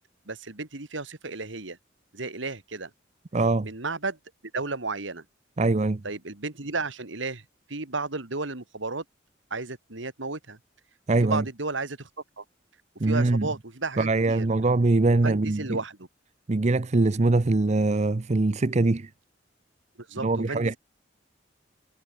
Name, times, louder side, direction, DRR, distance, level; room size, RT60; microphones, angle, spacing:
voice 1, 0.3-1.8 2.1-2.9 3.6-4.2 4.5-5.2 6.0-9.0 9.5-10.6 11.2-12.1 12.4-12.5 13.0-14.5 15.1-16.1 20.0-20.8, right 3 dB, 70° right, 2.2 m, -33 dB
voice 2, 3.3-3.7 5.6-6.0 11.1-11.4 13.0-13.5 14.0-15.8 16.5-19.1 20.2-20.8, right 2 dB, 35° right, 0.6 m, -23 dB
head